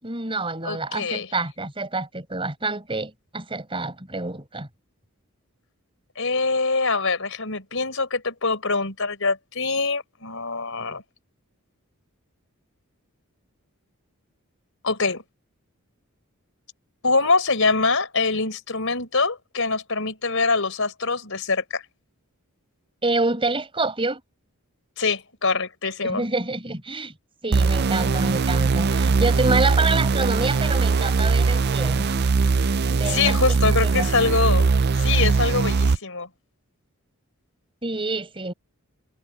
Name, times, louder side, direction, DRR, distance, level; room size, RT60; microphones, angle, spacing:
voice 1, 0.0-4.7 23.0-24.2 26.0-27.1 27.4-32.1 32.9-34.1 37.8-38.5, right 3 dB, 25° right, 5.5 m, -27 dB
voice 2, 0.6-1.3 6.2-11.0 14.8-15.2 17.0-21.8 25.0-26.2 33.1-34.7 34.9-36.3, left 4 dB, 60° left, 5.2 m, -24 dB
sound 1, 27.5-36.0, right 4 dB, 45° right, 0.5 m, -21 dB
head